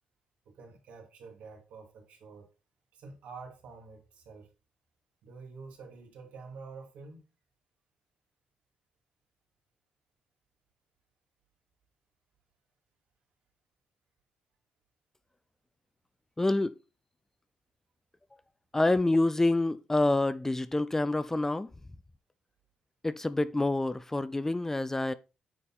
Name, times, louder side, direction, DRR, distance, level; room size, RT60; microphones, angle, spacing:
voice 1, 0.4-2.5 2.9-4.5 5.2-7.3, right 4 dB, 75° right, 2.8 m, -48 dB
voice 2, 16.4-16.8 18.7-21.7 23.0-25.1, left 2 dB, 15° left, 0.5 m, -27 dB
8.9 x 4.1 x 4.2 m
supercardioid pair, 65°, 2 cm